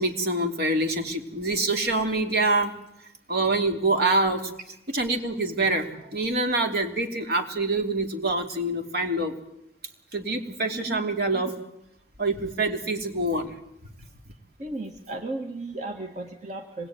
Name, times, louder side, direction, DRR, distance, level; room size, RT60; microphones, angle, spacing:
voice 1, 0.0-2.7 3.3-4.5 4.9-9.4 10.1-11.5 12.2-13.5, right 2 dB, 60° right, 4 dB, 3.0 m, -25 dB
voice 2, 14.6-16.9, right 2 dB, 40° right, 3 dB, 2.0 m, -35 dB
26.0 x 21.0 x 9.4 m, 0.83 s
head